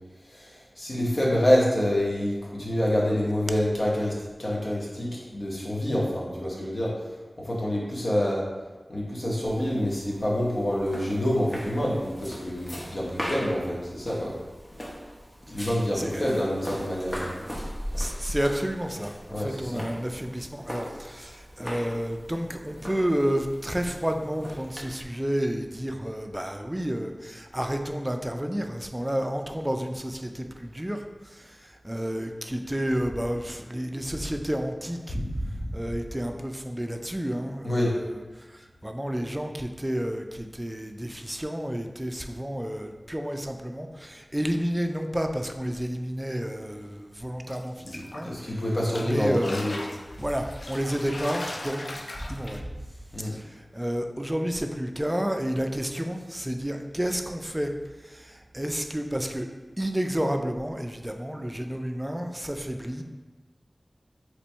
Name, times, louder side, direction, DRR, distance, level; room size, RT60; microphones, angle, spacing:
voice 1, 0.3-6.9 7.4-8.4 8.9-14.3 15.4-17.5 19.3-19.8 35.1-35.7 37.6-38.0 47.8-49.8 51.4-51.6 53.1-53.4, left 1 dB, 60° left, -5 dB, 0.8 m, -27 dB
sound 1, 9.4-25.0, equal, 20° left, 0.7 m, -39 dB
voice 2, 18.0-35.2 35.7-48.6 49.0-49.5 50.2-52.0 52.3-52.6 53.2-57.7 58.0-59.5 59.8-63.0, equal, 15° right, 4 dB, 0.4 m, -31 dB
sound 2, 47.5-48.5 48.9-52.6, left 2 dB, 75° left, 0.3 m, -39 dB
2.9 x 2.6 x 4.4 m, 1.2 s
wide cardioid pair, 50°, 0 cm